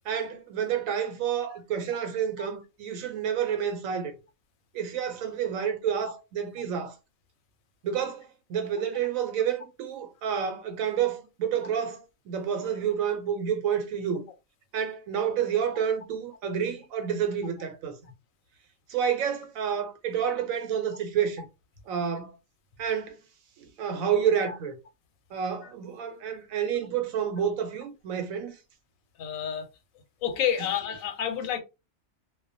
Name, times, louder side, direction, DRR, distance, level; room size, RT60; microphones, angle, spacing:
voice 1, 0.1-4.1 4.7-7.0 7.8-14.2 14.7-18.0 18.9-21.4 21.9-22.4 22.8-23.2 23.6-24.7 25.3-28.5, right 8 dB, 85° right, 1.1 m, -29 dB
voice 2, 29.2-29.7 30.2-31.6, left 9 dB, 85° left, 1.0 m, -29 dB
2.4 x 2.1 x 2.6 m
omnidirectional pair, 1.4 m